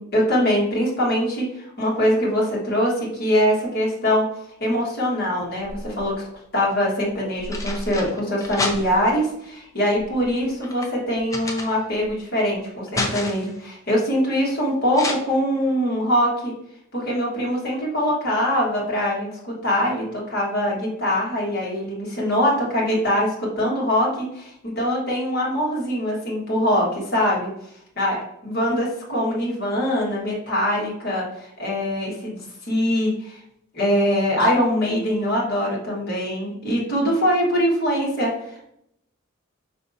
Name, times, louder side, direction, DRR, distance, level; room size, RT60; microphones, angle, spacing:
voice 1, 0.0-4.3 4.6-6.2 6.5-16.5 16.9-27.5 28.0-33.4 33.7-38.7, equal, 50° left, -4 dB, 1.6 m, -23 dB
sound 1, 5.4-6.2 7.1-9.2 9.9-12.2 12.5-13.6 14.9-15.1, left 2 dB, 15° left, 0.5 m, -30 dB
5.1 x 3.3 x 2.6 m, 0.75 s
head